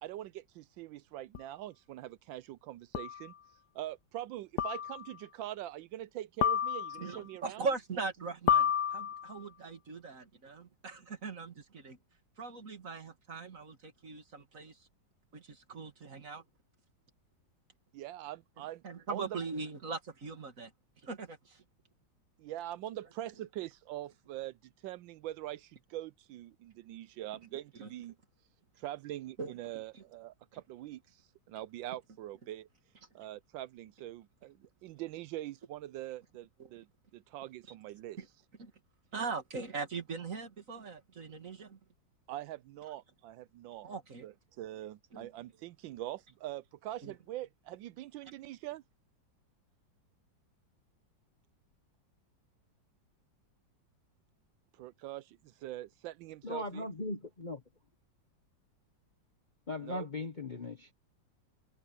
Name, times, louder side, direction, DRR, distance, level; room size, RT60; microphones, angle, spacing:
voice 1, 0.0-3.3 3.7-7.7 17.9-19.4 22.4-24.6 24.8-28.1 28.8-32.7 33.1-36.9 37.1-38.2 42.3-43.9 44.2-48.8 54.7-56.9 59.8-60.1, right 14 dB, 80° right, 1.3 m, -43 dB
sound 1, 1.3-1.4 2.9-3.3 4.6-5.1 6.4-7.2 8.5-9.4, left 9 dB, 65° left, 1.2 m, -30 dB
voice 2, 7.0-12.0 12.4-14.8 15.3-16.4 18.8-20.7 21.0-21.6 27.8-27.9 29.4-29.5 29.9-30.0 36.6-36.7 38.2-38.3 38.6-38.7 39.1-41.8 43.8-44.3 45.1-45.3 47.0-47.1, right 4 dB, 45° right, 2.5 m, -40 dB
voice 3, 56.4-57.6 59.7-60.9, left 2 dB, 30° left, 0.9 m, -38 dB
omnidirectional pair, 2.1 m